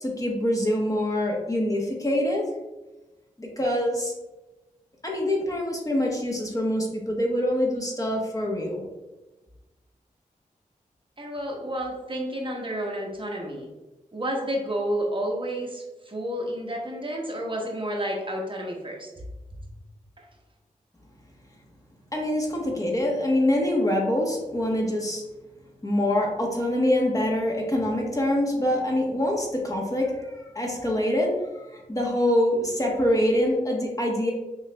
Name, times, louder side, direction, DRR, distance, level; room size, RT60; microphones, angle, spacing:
voice 1, 0.0-2.5 3.4-4.1 5.0-8.9 22.1-25.2 25.8-31.3 31.7-34.3, left 1 dB, 25° left, -1 dB, 1.0 m, -25 dB
voice 2, 11.2-13.7 14.1-19.1 20.2-20.3, equal, 35° right, -1 dB, 0.9 m, -30 dB
6.3 x 2.5 x 2.2 m, 1.1 s
cardioid pair, 50°, 15 cm